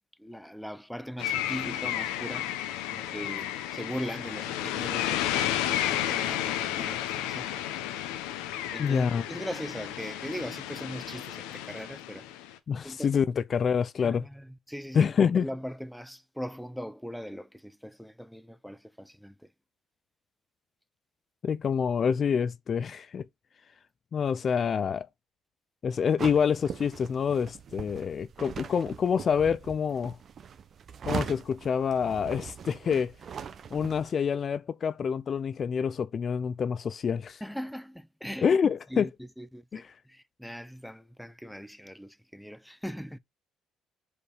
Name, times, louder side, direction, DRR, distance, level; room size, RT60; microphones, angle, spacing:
voice 1, 0.2-2.5 2.9-7.7 8.7-12.3 12.8-13.2 14.0-19.5 37.4-38.5 38.9-43.2, equal, ahead, 0.7 m, -40 dB
sound 1, 1.2-12.5, left 12 dB, 85° left, 0.8 m, -32 dB
voice 2, 8.8-9.2 12.7-14.2 14.9-15.5 21.4-23.2 24.1-25.1 25.8-30.2 31.1-33.1 33.7-37.4 38.4-39.1 39.7-39.8, left 7 dB, 50° left, 0.5 m, -27 dB
sound 2, 26.2-34.1, right 7 dB, 50° right, 0.9 m, -40 dB
5.1 x 4.9 x 4.8 m
supercardioid pair, 70°, 0 cm